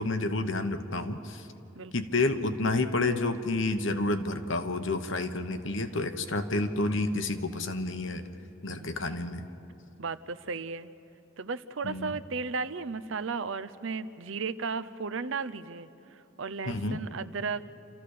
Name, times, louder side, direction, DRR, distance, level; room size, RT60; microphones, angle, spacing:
voice 1, 0.0-1.5 1.9-8.2 8.6-9.4 11.8-12.2 16.7-17.0, left 2 dB, 65° left, 8 dB, 1.2 m, -29 dB
voice 2, 10.0-10.9 11.4-17.7, right 4 dB, 65° right, 12 dB, 0.7 m, -35 dB
29.5 x 14.0 x 6.6 m, 2.8 s
head